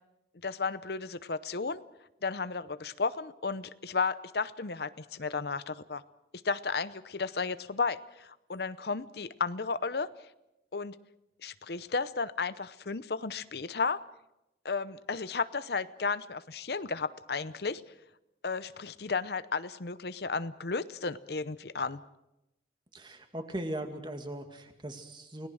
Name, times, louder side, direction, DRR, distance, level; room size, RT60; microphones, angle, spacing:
voice 1, 0.4-1.8 2.2-6.0 6.4-10.1 10.7-11.0 11.4-14.0 14.6-17.8 18.4-22.0, left 4 dB, 60° left, 15 dB, 0.7 m, -33 dB
voice 2, 22.9-25.5, right 1 dB, 25° right, 6 dB, 2.2 m, -39 dB
29.0 x 18.5 x 6.4 m, 0.90 s
head